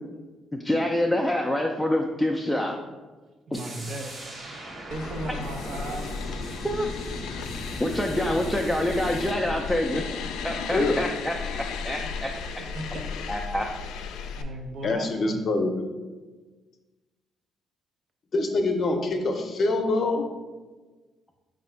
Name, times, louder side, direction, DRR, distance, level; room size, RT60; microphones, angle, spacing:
voice 1, 0.6-2.8 3.5-3.6 6.6-6.9 7.8-10.1 10.4-12.3 13.3-13.7, left 1 dB, 5° left, 0 dB, 0.4 m, -26 dB
sound 1, 3.5-9.3, equal, 45° right, 1.1 m, -39 dB
voice 2, 3.5-4.2 4.9-6.1 8.2-8.3 11.9-13.1 14.3-15.5, right 1 dB, 65° right, 4 dB, 0.6 m, -37 dB
sound 2, 4.9-14.4, left 5 dB, 90° left, 0.3 m, -35 dB
voice 3, 14.8-15.9 18.3-20.2, left 2 dB, 50° left, 5 dB, 0.6 m, -25 dB
4.6 x 2.5 x 4.4 m, 1.3 s
cardioid pair, 90°, 0 cm